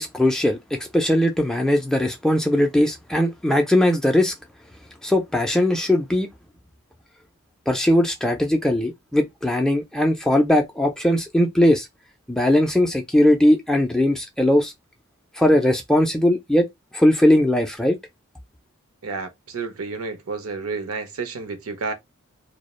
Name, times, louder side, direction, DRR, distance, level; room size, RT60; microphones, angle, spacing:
voice 1, 0.0-4.3 5.0-6.3 7.7-11.9 12.3-14.7 15.4-16.7 16.9-18.0, left 1 dB, 5° left, 0.3 m, -19 dB
voice 2, 19.0-21.9, right 4 dB, 80° right, 0.6 m, -30 dB
2.3 x 2.0 x 2.9 m
head